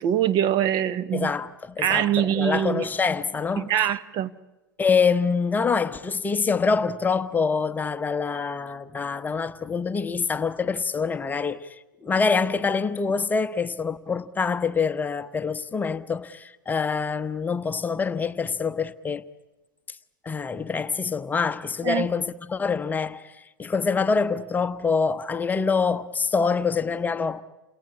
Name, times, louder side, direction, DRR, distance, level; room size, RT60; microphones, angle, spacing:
voice 1, 0.0-1.3 1.8-2.9 3.6-4.3 21.8-22.1, right 10 dB, 40° right, 0.8 m, -23 dB
voice 2, 1.1-3.7 4.8-11.7 12.0-19.2 20.2-23.3 23.6-27.4, left 5 dB, 15° left, 0.9 m, -25 dB
28.5 x 18.0 x 9.5 m
hypercardioid pair, 100°, 11 cm